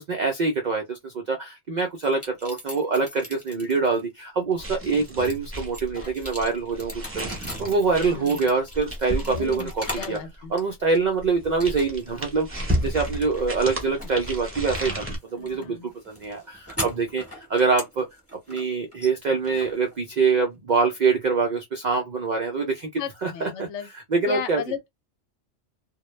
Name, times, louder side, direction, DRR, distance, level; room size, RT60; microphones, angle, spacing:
voice 1, 0.0-10.2 10.5-15.0 15.3-18.0 18.5-22.9 23.2-24.6, right 4 dB, 80° right, 0.4 m, -25 dB
sound 1, 2.0-4.0 4.5-10.2 10.6-11.2 11.6-12.2 12.5-20.4, equal, 10° left, 1.0 m, -40 dB
sound 2, 4.6-10.3 11.2-15.2, equal, 15° right, 0.7 m, -33 dB
voice 2, 9.3-9.7 10.0-10.5 15.4-15.9 23.0-23.9 24.3-24.9, left 9 dB, 70° left, 0.9 m, -34 dB
2.2 x 2.0 x 3.0 m
omnidirectional pair, 1.3 m